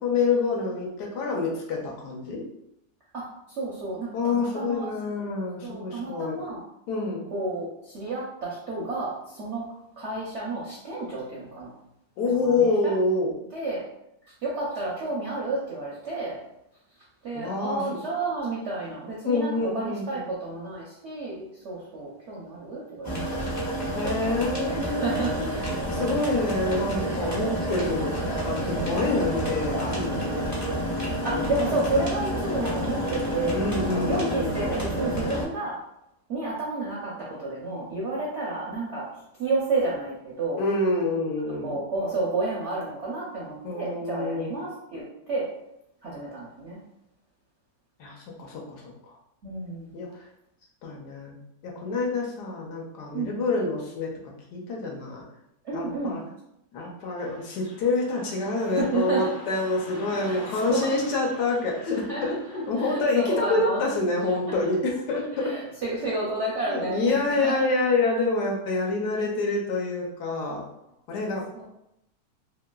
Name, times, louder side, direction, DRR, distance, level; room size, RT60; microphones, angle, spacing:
voice 1, 0.0-2.4 4.1-6.4 6.9-7.3 12.2-13.3 17.3-17.8 19.2-20.3 23.9-25.5 25.9-30.5 31.3-31.6 33.5-34.5 40.6-41.8 43.6-44.6 48.0-49.2 49.9-50.1 50.8-51.4 51.6-55.2 55.7-56.2 56.7-65.5 66.7-70.6 71.1-71.4, left 3 dB, 70° left, -1 dB, 1.1 m, -27 dB
voice 2, 3.1-4.9 5.6-6.6 7.3-9.6 10.0-11.7 12.3-12.9 13.5-13.8 14.2-16.4 17.2-23.5 24.0-25.8 27.4-27.7 31.2-35.8 36.3-39.1 39.4-40.6 41.6-45.5 46.0-46.8 49.4-49.9 53.1-53.4 55.6-56.2 58.8-59.2 60.3-60.4 60.7-60.9 61.9-62.2 62.8-63.9 64.5-64.6 65.4-67.5 71.5-71.6, right 3 dB, 65° right, -7 dB, 0.7 m, -31 dB
sound 1, 23.0-35.4, right 1 dB, 20° left, 0.4 m, -29 dB
Car passing by / Traffic noise roadway noise, 57.2-66.2, left 1 dB, 50° left, 0.8 m, -46 dB
3.1 x 2.8 x 2.2 m, 0.83 s
omnidirectional pair, 1.9 m